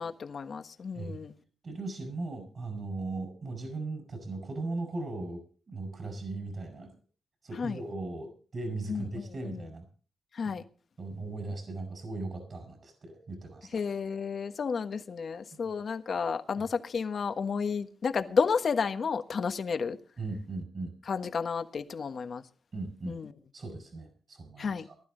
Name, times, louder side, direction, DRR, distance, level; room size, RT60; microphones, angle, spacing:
voice 1, 0.0-1.3 7.5-7.8 8.9-9.6 10.3-10.6 13.7-20.0 21.1-22.4 23.1-23.3 24.6-24.9, left 5 dB, 55° left, 1.4 m, -32 dB
voice 2, 1.6-6.9 7.4-9.9 10.4-10.5 11.0-13.8 20.2-20.9 22.7-23.2 23.5-24.9, right 2 dB, 45° right, 5.3 m, -38 dB
19.5 x 12.0 x 3.9 m
cardioid pair, 105°, 0 cm